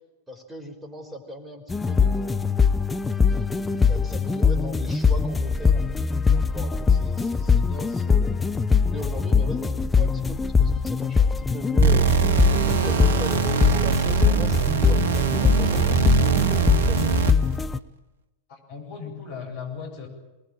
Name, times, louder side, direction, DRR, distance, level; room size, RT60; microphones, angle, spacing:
voice 1, 0.3-2.6 3.2-12.2 12.5-17.1, equal, 10° right, 6 dB, 5.0 m, -39 dB
sound 1, 1.7-17.8, left 5 dB, 10° left, 0.9 m, -22 dB
sound 2, 11.8-17.6, right 8 dB, 60° right, 1.1 m, -22 dB
voice 2, 18.5-20.1, left 6 dB, 50° left, 2 dB, 7.9 m, -37 dB
24.5 x 20.5 x 8.9 m, 1.1 s
figure-of-eight pair, 90°, 0 cm